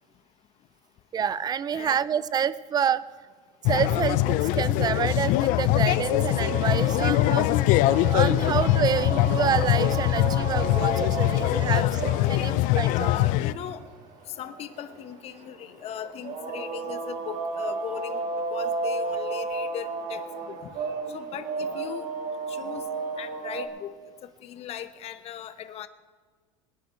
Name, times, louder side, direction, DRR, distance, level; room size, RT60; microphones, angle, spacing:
voice 1, 1.1-3.0 3.6-7.5 8.0-13.1, right 8 dB, 25° right, 18 dB, 0.5 m, -28 dB
voice 2, 1.7-2.1 7.0-7.5 11.6-12.5 12.9-13.8 14.4-18.2 18.5-20.7 21.1-22.1 22.5-22.9 23.2-23.9 24.4-25.9, left 10 dB, 40° left, 11 dB, 0.9 m, -38 dB
sound 1, 3.6-13.5, left 16 dB, 55° left, 0.6 m, -23 dB
sound 2, 5.8-23.7, right 4 dB, 50° right, 2.3 m, -34 dB
22.0 x 10.0 x 4.6 m, 1.5 s
supercardioid pair, 120°, 17 cm